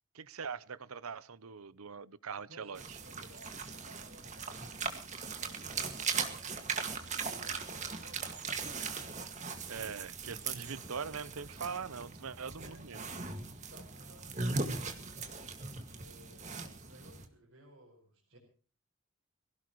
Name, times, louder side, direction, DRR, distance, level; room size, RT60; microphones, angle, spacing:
voice 1, 0.1-3.0 9.7-13.0, right 6 dB, 85° right, 0.8 m, -42 dB
voice 2, 2.5-4.9 5.4-9.0 12.6-15.1 15.9-18.4, right 1 dB, 55° right, 6.2 m, -59 dB
sound 1, 2.7-17.3, right 4 dB, 35° right, 1.9 m, -39 dB
24.0 x 16.5 x 3.1 m
head